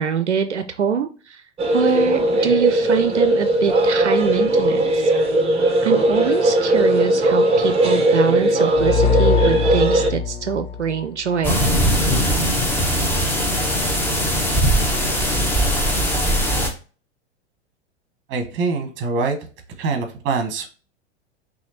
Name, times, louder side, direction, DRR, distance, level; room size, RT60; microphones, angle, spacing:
voice 1, 0.0-1.4 1.7-5.1 5.8-11.6, right 7 dB, 85° right, 9 dB, 0.5 m, -23 dB
sound 1, 1.6-10.1, right 1 dB, 20° right, 0.9 m, -18 dB
sound 2, 8.7-11.5, left 6 dB, 65° left, 1.1 m, -22 dB
sound 3, 11.4-16.7, equal, 5° left, 1.1 m, -20 dB
voice 2, 18.3-19.4 19.8-20.7, right 4 dB, 35° right, 5 dB, 1.2 m, -24 dB
5.7 x 2.7 x 2.8 m, 0.37 s
figure-of-eight pair, 90°, 34 cm